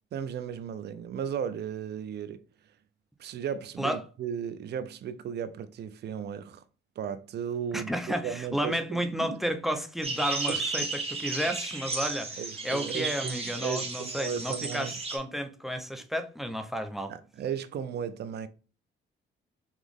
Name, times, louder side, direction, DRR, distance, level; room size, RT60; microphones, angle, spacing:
voice 1, 0.1-2.4 3.2-6.6 7.0-9.4 10.5-10.9 12.4-15.0 17.1-18.5, right 8 dB, 55° right, 0.5 m, -35 dB
voice 2, 7.7-17.1, equal, ahead, 0.6 m, -32 dB
sound 1, 10.0-15.2, right 3 dB, 30° right, 1.2 m, -34 dB
4.0 x 2.9 x 3.5 m
cardioid pair, 90°, 20 cm